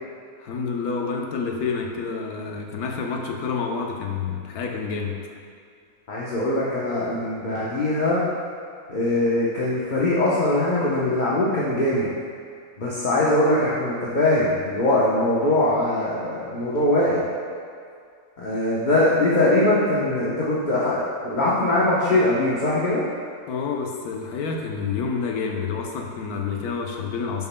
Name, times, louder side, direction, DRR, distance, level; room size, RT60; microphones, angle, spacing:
voice 1, 0.4-5.1 23.5-27.5, left 5 dB, 85° left, 2 dB, 1.3 m, -28 dB
voice 2, 6.1-8.2 8.9-12.1 12.8-17.2 18.4-23.0, left 1 dB, 35° left, -7 dB, 0.9 m, -22 dB
10.5 x 7.2 x 2.2 m, 2.2 s
omnidirectional pair, 1.6 m